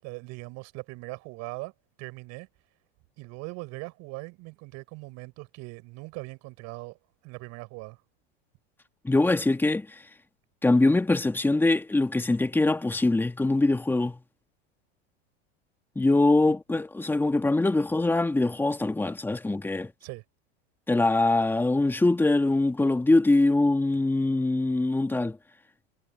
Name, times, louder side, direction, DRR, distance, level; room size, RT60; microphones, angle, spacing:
voice 1, 0.0-1.7 2.0-2.5 3.2-7.0 7.2-8.0 16.5-16.8 20.0-20.2, right 25 dB, 55° right, 6.3 m, -40 dB
voice 2, 9.0-9.9 10.6-14.2 15.9-19.9 20.9-25.4, left 2 dB, 5° left, 1.7 m, -23 dB
supercardioid pair, 130°, 33 cm